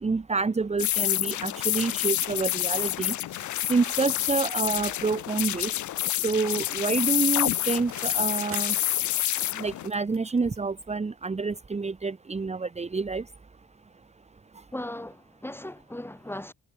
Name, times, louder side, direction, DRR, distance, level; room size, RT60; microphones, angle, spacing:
voice 1, 0.0-3.1 3.7-5.7 6.2-8.7 9.5-13.2, right 4 dB, 20° right, 1.4 m, -28 dB
sound 1, 0.8-9.9, left 14 dB, 70° left, 1.1 m, -28 dB
Bicycle, 6.4-11.1 11.4-11.5, right 7 dB, 45° right, 7.5 m, -48 dB
voice 2, 14.7-16.5, left 1 dB, 5° left, 4.5 m, -37 dB
cardioid pair, 90°, 30 cm